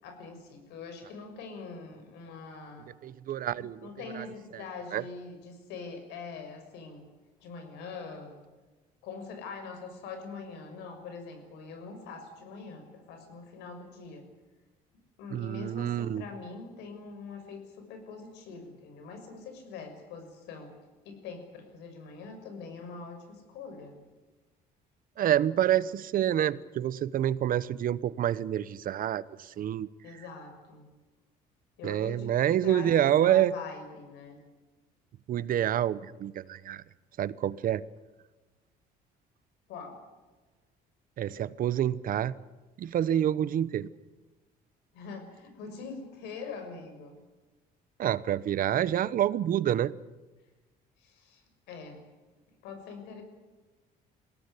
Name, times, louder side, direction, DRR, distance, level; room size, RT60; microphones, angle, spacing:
voice 1, 0.0-2.9 3.6-7.1 7.4-8.4 9.0-14.3 15.2-20.8 21.0-24.0 30.0-30.9 31.8-32.3 32.6-34.4 39.7-40.0 44.9-47.2 51.0-52.0 52.6-53.2, left 4 dB, 90° left, 6 dB, 6.4 m, -43 dB
voice 2, 3.0-3.9 4.1-4.2 4.9-5.0 15.3-16.2 25.2-29.9 31.8-33.5 35.3-36.8 37.2-37.8 41.2-42.3 42.8-43.9 48.0-49.9, right 11 dB, 55° right, 18 dB, 1.0 m, -27 dB
22.5 x 17.5 x 9.9 m, 1.2 s
cardioid pair, 110°, 17 cm